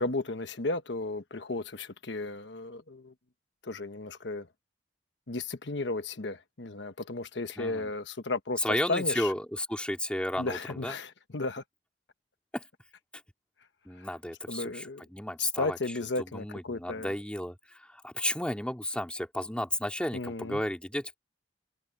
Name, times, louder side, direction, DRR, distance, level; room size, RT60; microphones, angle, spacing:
voice 1, 0.0-3.1 3.6-4.5 5.3-8.6 8.9-9.3 10.4-11.6 14.0-14.1 14.5-15.1 15.4-17.1 20.1-20.6, left 3 dB, 80° left, 1.2 m, -34 dB
voice 2, 7.6-7.9 8.6-10.9 12.5-12.6 13.9-15.8 16.2-21.2, left 1 dB, 5° left, 2.2 m, -33 dB
head